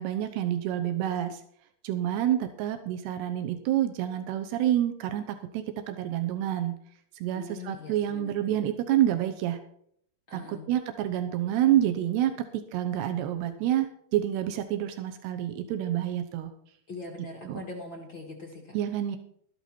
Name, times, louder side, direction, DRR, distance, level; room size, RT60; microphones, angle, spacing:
voice 1, 0.0-1.4 1.8-6.8 7.2-9.6 10.3-16.5 17.2-17.6 18.7-19.2, right 12 dB, 90° right, 7 dB, 3.0 m, -28 dB
voice 2, 7.3-8.6 10.3-10.7 16.9-18.8, left 3 dB, 60° left, 0 dB, 1.2 m, -42 dB
13.0 x 11.0 x 4.4 m, 0.66 s
omnidirectional pair, 4.6 m